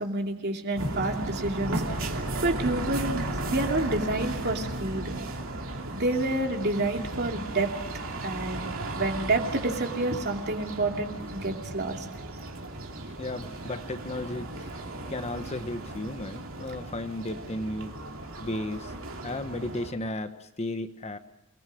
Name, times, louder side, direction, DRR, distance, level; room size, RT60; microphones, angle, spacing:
voice 1, 0.0-2.1 2.4-5.1 5.9-12.1, right 2 dB, 50° right, 2 dB, 2.8 m, -29 dB
sound 1, 0.8-19.9, right 2 dB, 65° right, 3.0 m, -35 dB
voice 2, 13.2-17.9 18.4-18.9 19.2-21.2, left 1 dB, 30° left, 9 dB, 1.1 m, -34 dB
28.5 x 19.5 x 6.3 m, 0.83 s
head